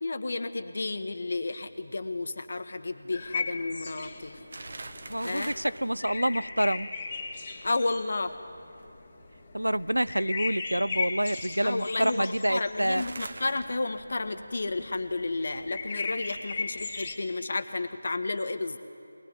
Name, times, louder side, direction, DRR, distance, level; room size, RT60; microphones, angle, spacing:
voice 1, 0.0-4.4 5.2-5.5 7.6-8.3 11.6-18.8, left 3 dB, 50° left, 9 dB, 1.7 m, -32 dB
sound 1, 0.8-17.1, right 2 dB, 50° right, 1.8 m, -49 dB
sound 2, 3.1-17.2, left 4 dB, 30° left, 2.6 m, -38 dB
voice 2, 5.1-6.9 9.5-13.0, right 1 dB, 85° right, 18 dB, 0.6 m, -27 dB
22.5 x 21.5 x 9.9 m, 2.5 s
figure-of-eight pair, 160°, 0 cm